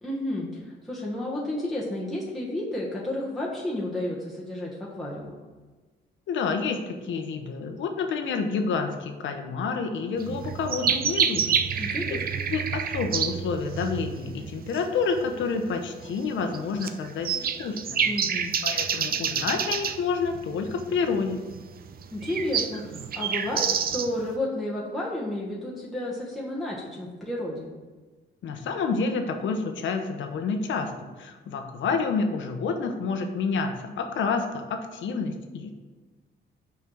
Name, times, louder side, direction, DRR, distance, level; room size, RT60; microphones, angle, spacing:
voice 1, 0.0-5.3 11.8-12.4 18.1-18.6 22.1-27.7, left 1 dB, ahead, -6 dB, 1.4 m, -32 dB
voice 2, 6.3-11.5 11.8-11.9 12.5-18.1 18.6-21.4 28.4-30.9 31.2-35.7, left 5 dB, 70° left, 5 dB, 1.0 m, -29 dB
sound 1, 10.2-24.3, right 7 dB, 50° right, 0.6 m, -28 dB
5.8 x 4.6 x 6.3 m, 1.3 s
cardioid pair, 90°, 20 cm